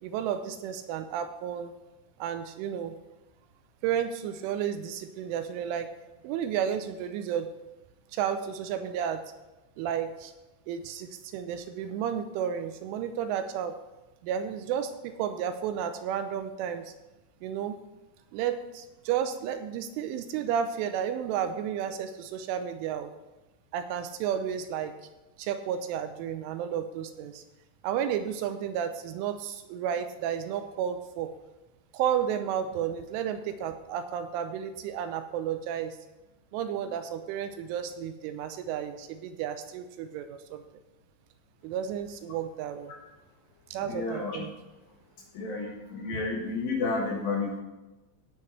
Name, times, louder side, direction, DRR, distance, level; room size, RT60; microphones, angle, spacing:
voice 1, 0.0-1.7 2.2-3.0 3.8-5.9 6.2-7.5 8.1-9.3 9.8-10.3 10.7-13.7 14.2-16.9 17.4-17.8 18.3-23.1 23.7-24.9 25.4-27.4 27.8-31.3 31.9-36.0 36.5-40.6 41.6-42.9 43.7-44.5, right 9 dB, 85° right, 9 dB, 3.0 m, -32 dB
voice 2, 43.9-44.4 45.3-47.6, left 3 dB, 65° left, -1 dB, 2.4 m, -31 dB
16.5 x 8.7 x 3.2 m, 1.1 s
omnidirectional pair, 5.8 m